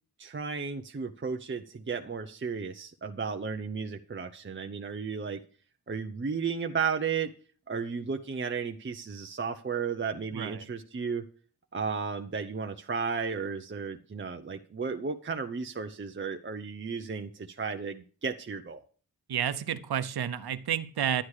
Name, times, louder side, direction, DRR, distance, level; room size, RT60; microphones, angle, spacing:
voice 1, 0.2-5.4 5.9-7.3 7.7-11.2 11.7-18.8, right 5 dB, 30° right, 5 dB, 0.7 m, -34 dB
voice 2, 10.3-10.7 19.3-21.2, right 9 dB, 80° right, 12 dB, 0.9 m, -30 dB
11.5 x 9.9 x 4.8 m, 0.41 s
wide cardioid pair, 130°, 37 cm